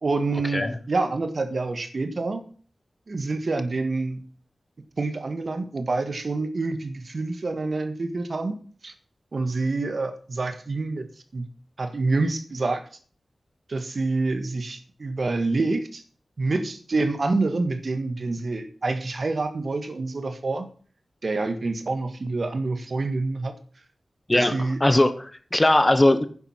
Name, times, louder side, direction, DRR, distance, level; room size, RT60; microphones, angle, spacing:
voice 1, 0.0-2.4 3.1-4.2 5.0-8.6 8.8-8.9 9.3-11.1 11.3-11.5 11.8-12.8 13.7-16.0 16.4-20.7 21.2-23.5 24.3-24.8, right 3 dB, 60° right, 1.6 m, -27 dB
voice 2, 24.3-26.2, left 1 dB, 25° left, 1.1 m, -20 dB
10.0 x 7.6 x 5.8 m
wide cardioid pair, 70°, 0 cm